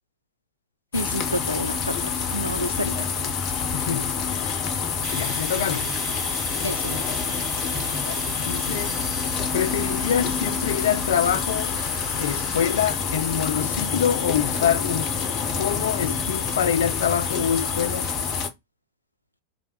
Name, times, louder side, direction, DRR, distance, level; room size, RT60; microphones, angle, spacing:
sound 1, 0.9-18.5, left 6 dB, 35° left, 0.7 m, -27 dB
voice 1, 0.9-3.0 5.6-5.7 6.6-7.0, equal, 90° right, 0.4 m, -29 dB
voice 2, 3.7-4.5 5.1-5.9 8.0-8.9 9.5-11.7 12.2-15.1 15.6-18.1, left 9 dB, 60° left, 0.3 m, -26 dB
Domestic sounds home sounds, 5.0-12.9, right 1 dB, 30° right, 2.6 m, -37 dB
3.4 x 2.6 x 4.4 m
figure-of-eight pair, 90°, 0 cm